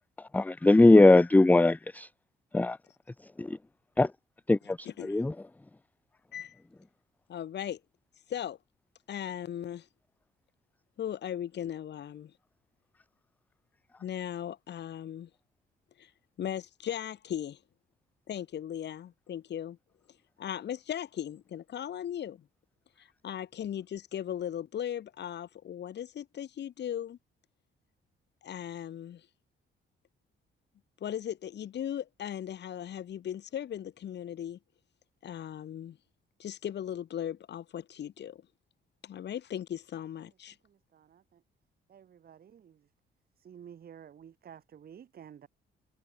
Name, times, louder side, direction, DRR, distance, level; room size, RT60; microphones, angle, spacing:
voice 1, 0.3-2.1 2.5-2.8 3.4-3.6 4.0-4.1 4.5-5.3, left 2 dB, 10° left, 0.5 m, -21 dB
voice 2, 4.8-5.2 6.3-6.6 7.3-7.8 8.3-8.6 9.1-9.9 11.0-12.3 14.0-15.3 16.0-16.1 16.4-17.6 18.3-19.8 20.4-22.4 23.0-27.2 28.4-29.3 31.0-34.6 35.2-36.0 36.4-38.4 39.0-40.6, left 10 dB, 60° left, 1.6 m, -37 dB
voice 3, 40.6-41.4 41.9-42.9 43.4-45.5, right 8 dB, 50° right, 1.3 m, -52 dB
cardioid pair, 90°, 20 cm